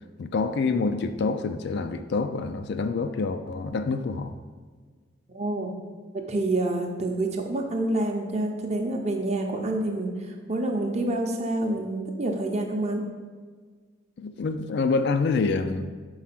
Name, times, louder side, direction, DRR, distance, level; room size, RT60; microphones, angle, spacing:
voice 1, 0.2-4.3 14.2-15.9, left 4 dB, 55° left, 9 dB, 0.4 m, -27 dB
voice 2, 5.3-5.7 6.1-10.1 10.5-13.1, right 2 dB, 35° right, 3 dB, 0.7 m, -27 dB
4.8 x 4.3 x 5.8 m, 1.5 s
head